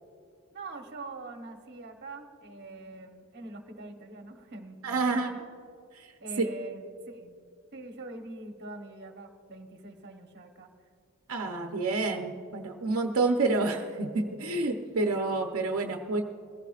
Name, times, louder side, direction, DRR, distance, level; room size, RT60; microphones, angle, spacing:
voice 1, 0.5-5.4 6.2-7.4 7.7-10.7, right 2 dB, 50° right, 4 dB, 1.1 m, -44 dB
voice 2, 4.8-5.3 5.9-6.1 11.3-16.2, right 3 dB, 75° right, 3 dB, 0.8 m, -28 dB
21.0 x 15.5 x 2.5 m, 2.3 s
head